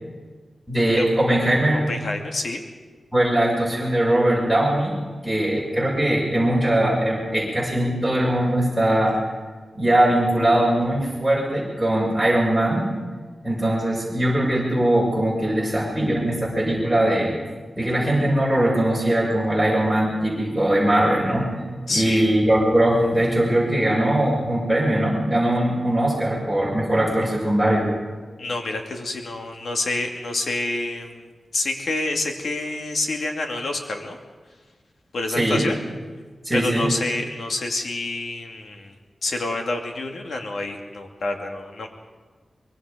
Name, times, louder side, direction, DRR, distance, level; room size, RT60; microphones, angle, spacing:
voice 1, 0.7-1.8 3.1-5.0 5.2-9.2 9.7-12.9 13.4-17.3 17.8-21.5 21.9-27.9 35.3-35.6 36.4-36.9, right 1 dB, 5° left, -4 dB, 6.2 m, -21 dB
voice 2, 1.7-2.6 21.9-22.2 28.4-34.2 35.1-35.8 36.5-38.9 39.2-41.9, left 2 dB, 75° left, 3 dB, 2.5 m, -28 dB
24.0 x 22.5 x 5.2 m, 1.4 s
wide cardioid pair, 130°, 0 cm